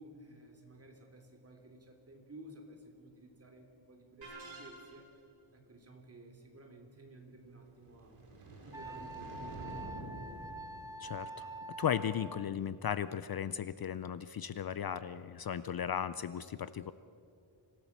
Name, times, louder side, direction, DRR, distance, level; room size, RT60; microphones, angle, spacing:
voice 1, 0.0-4.3 4.6-5.1 5.5-8.2 8.6-9.7, right 1 dB, 30° right, 2 dB, 3.1 m, -54 dB
sound 1, 4.2-5.2, right 3 dB, 65° right, 6.4 m, -49 dB
sound 2, 7.6-11.9, right 1 dB, 85° right, 6.6 m, -48 dB
Wind instrument woodwind instrument, 8.7-12.5, right 2 dB, 5° right, 0.6 m, -46 dB
voice 2, 11.0-11.5 11.8-16.9, left 8 dB, 50° left, 14 dB, 0.5 m, -36 dB
26.0 x 17.0 x 7.3 m, 2.5 s
wide cardioid pair, 180°, 50 cm